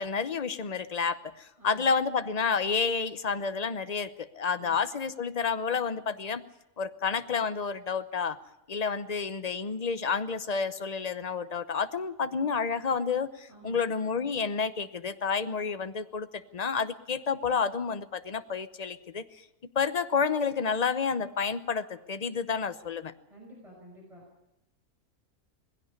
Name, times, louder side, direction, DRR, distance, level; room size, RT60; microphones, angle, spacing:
voice 1, 0.0-6.4 6.8-8.4 8.7-19.2 19.7-23.1, left 5 dB, 35° left, 12 dB, 0.8 m, -30 dB
voice 2, 1.6-1.9 4.5-4.8 13.5-13.9 23.3-24.2, right 1 dB, 20° right, -1 dB, 5.5 m, -51 dB
20.0 x 16.0 x 9.7 m, 0.87 s
omnidirectional pair, 1.6 m